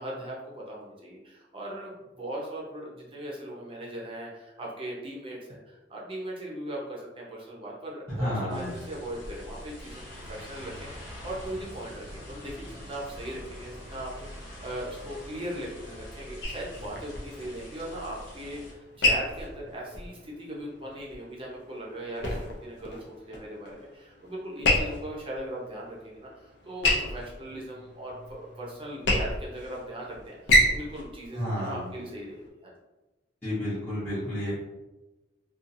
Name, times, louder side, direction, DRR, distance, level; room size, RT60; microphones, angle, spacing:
voice 1, 0.0-32.7, right 1 dB, 30° right, -4 dB, 0.6 m, -39 dB
voice 2, 8.2-8.7 31.3-31.8 33.4-34.5, equal, 10° left, -13 dB, 0.8 m, -30 dB
sound 1, 8.5-18.7, equal, 90° left, 1.0 m, -44 dB
sound 2, 16.4-32.5, left 1 dB, 65° left, 0.5 m, -30 dB
2.6 x 2.4 x 2.6 m, 1.1 s
head